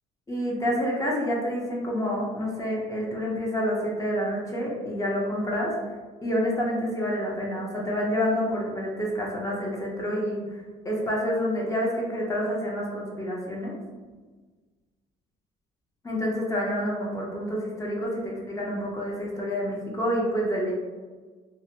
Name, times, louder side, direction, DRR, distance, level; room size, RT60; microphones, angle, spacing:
voice 1, 0.3-5.7 6.2-10.6 10.8-13.8 16.0-20.7, equal, 20° left, -3 dB, 0.5 m, -28 dB
2.5 x 2.1 x 2.6 m, 1.4 s
cardioid pair, 110°, 17 cm